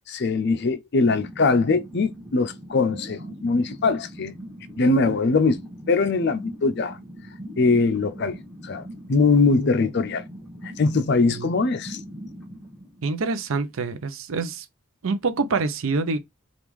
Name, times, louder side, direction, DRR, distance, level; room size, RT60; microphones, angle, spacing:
voice 1, 0.1-4.3 4.8-5.6 5.9-7.0 7.6-8.4 8.6-8.8 9.1-10.2 10.6-12.0, left 3 dB, 50° left, 0.4 m, -21 dB
sound 1, 1.0-13.7, equal, ahead, 1.1 m, -41 dB
voice 2, 13.0-14.7 15.0-16.2, right 4 dB, 65° right, 0.5 m, -26 dB
3.6 x 2.4 x 3.0 m
head